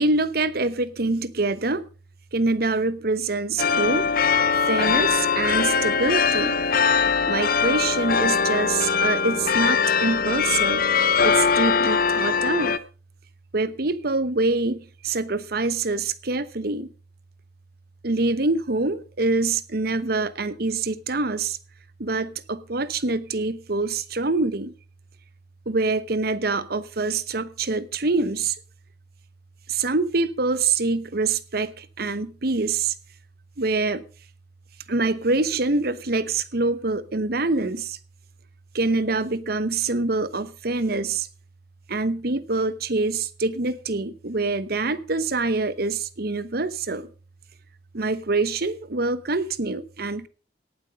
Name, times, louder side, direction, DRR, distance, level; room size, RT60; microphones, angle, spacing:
voice 1, 0.0-1.8 2.3-4.1 4.6-6.6 7.3-10.8 11.2-12.8 13.5-16.9 18.0-21.6 22.0-24.7 25.7-28.6 29.7-32.9 33.6-34.0 34.9-38.0 38.7-41.3 41.9-47.1 47.9-50.3, right 3 dB, 60° right, 1.1 m, -25 dB
sound 1, 3.6-12.8, left 5 dB, 55° left, 0.8 m, -21 dB
18.0 x 7.6 x 5.2 m
head